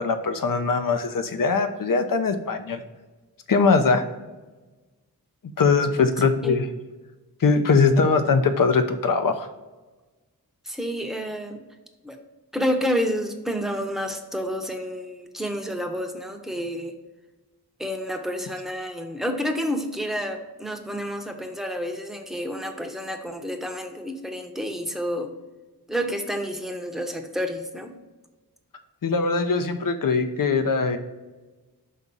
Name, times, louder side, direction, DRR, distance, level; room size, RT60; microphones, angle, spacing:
voice 1, 0.0-2.8 3.5-4.0 5.6-6.7 7.4-9.5 29.0-31.0, left 4 dB, 55° left, 9 dB, 0.7 m, -21 dB
voice 2, 6.2-6.6 10.6-11.6 12.0-12.2 12.5-16.9 17.8-25.3 25.9-27.9, equal, ahead, 4 dB, 0.8 m, -29 dB
5.5 x 3.6 x 5.3 m, 1.2 s
wide cardioid pair, 65°, 39 cm